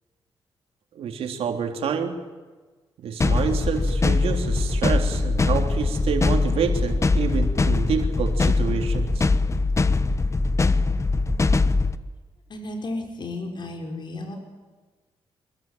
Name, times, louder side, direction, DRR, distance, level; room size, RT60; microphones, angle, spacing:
voice 1, 1.0-2.2 3.0-9.2, right 6 dB, 80° right, 4 dB, 3.5 m, -28 dB
sound 1, 3.2-12.0, left 3 dB, 30° left, 1.3 m, -22 dB
voice 2, 12.5-14.4, left 2 dB, 50° left, 3 dB, 5.7 m, -33 dB
26.0 x 22.5 x 9.3 m, 1.3 s
cardioid pair, 95°, 10 cm